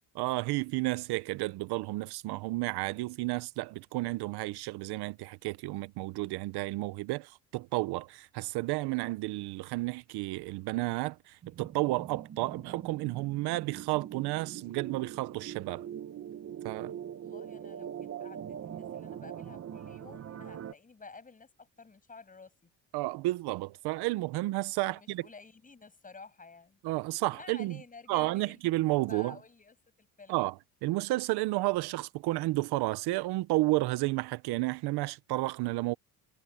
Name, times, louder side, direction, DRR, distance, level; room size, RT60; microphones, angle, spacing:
voice 1, 0.2-15.9 16.6-16.9 22.9-25.2 26.8-27.8 28.1-29.4 30.3-30.5 30.8-35.9, right 20 dB, 80° right, 0.8 m, -32 dB
sound 1, 11.4-20.7, right 9 dB, 40° right, 1.2 m, -42 dB
voice 2, 17.2-22.7 24.8-26.8 27.3-28.6 29.1-30.4, left 4 dB, 20° left, 7.7 m, -52 dB
cardioid pair, 130°, 39 cm